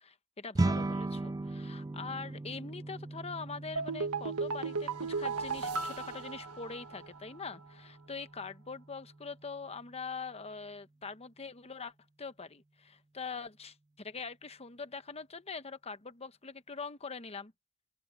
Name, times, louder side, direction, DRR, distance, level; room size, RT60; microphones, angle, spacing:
voice 1, 0.0-11.9 12.2-17.5, left 4 dB, 30° left, 1.0 m, -43 dB
sound 1, 0.5-10.0, right 2 dB, 15° right, 0.3 m, -39 dB
sound 2, 3.8-7.2 7.5-7.6, right 4 dB, 85° right, 1.4 m, -35 dB
open air
head